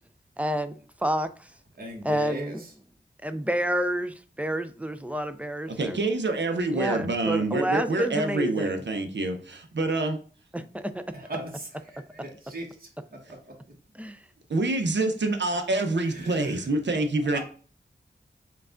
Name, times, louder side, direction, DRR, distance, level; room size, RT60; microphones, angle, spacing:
voice 1, 0.4-1.3 2.0-2.6 3.2-6.0 6.7-8.7 10.5-11.0 13.9-14.2, right 1 dB, 5° right, 0.4 m, -29 dB
voice 2, 1.8-2.6 3.4-3.5 11.1-12.9 16.1-16.6 17.3-17.4, right 1 dB, 50° right, 1.3 m, -38 dB
voice 3, 5.7-10.2 14.5-17.4, right 2 dB, 70° right, 0.7 m, -26 dB
4.6 x 2.4 x 3.7 m
wide cardioid pair, 80°, 19 cm